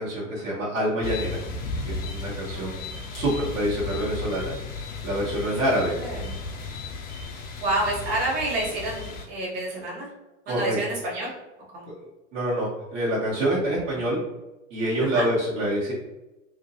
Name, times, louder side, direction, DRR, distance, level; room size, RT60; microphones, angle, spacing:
voice 1, 0.0-1.4 1.8-2.7 3.1-4.5 5.0-5.9 10.5-10.8 12.3-14.2 14.7-15.9, right 1 dB, 70° right, -7 dB, 1.4 m, -26 dB
sound 1, 1.0-9.3, left 3 dB, 25° left, 0.5 m, -34 dB
voice 2, 2.5-3.0 3.3-3.5 5.6-6.3 7.3-10.1 10.4-11.3 11.7-11.9 15.0-15.3, right 1 dB, 50° right, -5 dB, 1.5 m, -30 dB
2.8 x 2.7 x 2.7 m, 1.0 s
hypercardioid pair, 105°, 39 cm